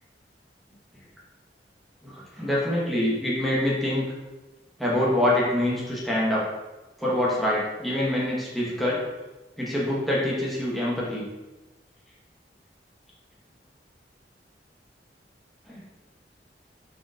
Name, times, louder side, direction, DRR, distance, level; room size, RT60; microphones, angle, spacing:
voice 1, 2.0-4.1 4.8-6.4 7.0-9.0 9.6-11.3 15.7-15.8, left 1 dB, ahead, -6 dB, 0.9 m, -25 dB
4.0 x 3.8 x 2.5 m, 1.1 s
head